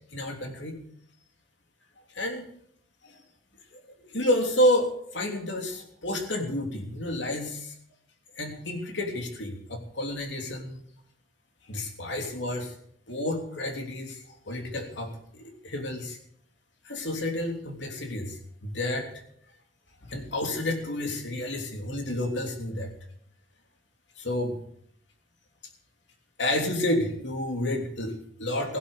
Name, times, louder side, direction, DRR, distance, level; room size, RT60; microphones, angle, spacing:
voice 1, 0.1-0.8 2.1-2.4 3.0-3.2 3.7-7.7 8.3-10.8 11.7-12.7 13.1-16.2 16.8-19.1 20.0-22.9 24.2-24.6 26.4-28.8, left 1 dB, 65° left, 4 dB, 3.2 m, -30 dB
16.5 x 11.0 x 6.7 m, 0.64 s
head